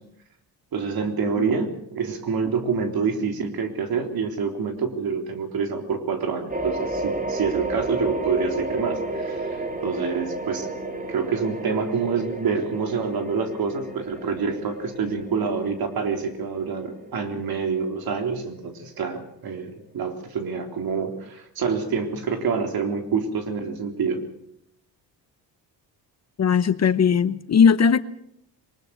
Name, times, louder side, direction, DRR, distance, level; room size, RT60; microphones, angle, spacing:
voice 1, 0.7-10.7 11.1-24.2, right 5 dB, 60° right, 5 dB, 3.6 m, -27 dB
sound 1, 6.5-19.3, right 1 dB, 20° right, 2.6 m, -32 dB
voice 2, 26.4-28.0, left 6 dB, 40° left, 14 dB, 0.9 m, -18 dB
22.5 x 20.0 x 6.5 m, 0.71 s
cardioid pair, 105°, 41 cm